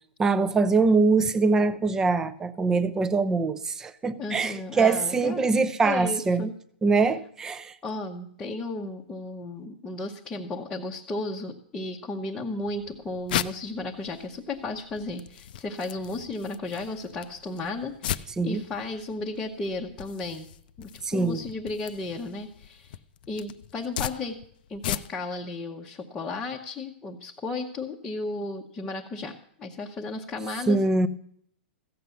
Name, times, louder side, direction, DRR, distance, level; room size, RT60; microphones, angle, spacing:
voice 1, 0.2-6.5 6.8-7.8 18.4-18.6 21.0-21.4 30.7-31.1, right 4 dB, 10° right, 0.5 m, -23 dB
voice 2, 4.2-5.5 5.8-6.5 7.8-20.5 20.8-23.0 23.3-24.4 24.7-30.8, left 2 dB, 10° left, 0.8 m, -34 dB
sound 1, 12.6-25.4, left 11 dB, 55° left, 0.5 m, -38 dB
15.0 x 7.7 x 6.9 m
hypercardioid pair, 160°, 6 cm